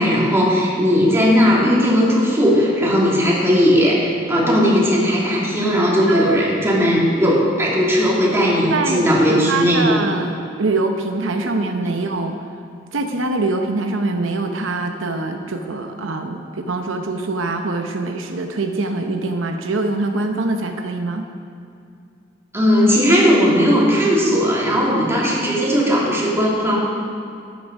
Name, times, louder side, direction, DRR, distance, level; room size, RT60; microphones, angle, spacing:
voice 1, 0.0-10.0 22.5-26.8, equal, 15° right, -5 dB, 2.8 m, -17 dB
voice 2, 6.0-6.4 8.7-12.3 12.9-21.3, right 3 dB, 80° right, 5 dB, 0.8 m, -24 dB
13.0 x 9.4 x 5.4 m, 2.5 s
head